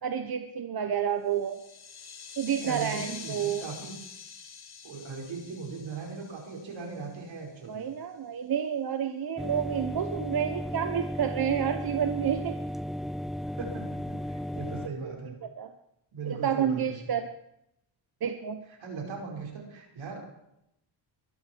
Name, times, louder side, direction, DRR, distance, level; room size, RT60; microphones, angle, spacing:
voice 1, 0.0-1.6 2.4-3.6 7.7-12.6 14.8-15.7 16.2-17.3 18.2-18.6, right 8 dB, 50° right, 7 dB, 1.2 m, -30 dB
sound 1, 1.3-7.4, left 6 dB, 55° left, 2.1 m, -45 dB
voice 2, 2.5-4.0 4.8-7.9 13.6-15.4 16.1-17.0 18.8-20.2, right 5 dB, 75° right, 0 dB, 5.4 m, -39 dB
sound 2, 9.4-14.9, equal, ahead, 0.5 m, -35 dB
22.5 x 12.0 x 4.7 m, 0.82 s
cardioid pair, 85°, 46 cm